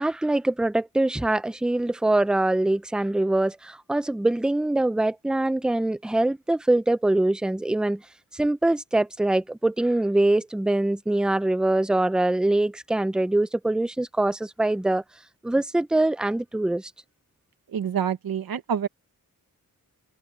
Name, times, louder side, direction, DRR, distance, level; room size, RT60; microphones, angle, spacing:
voice 1, 0.0-8.0 8.3-15.0 15.4-16.9, right 2 dB, ahead, 0.4 m, -23 dB
voice 2, 17.7-18.9, right 8 dB, 85° right, 1.2 m, -27 dB
wide cardioid pair, 150°, 35 cm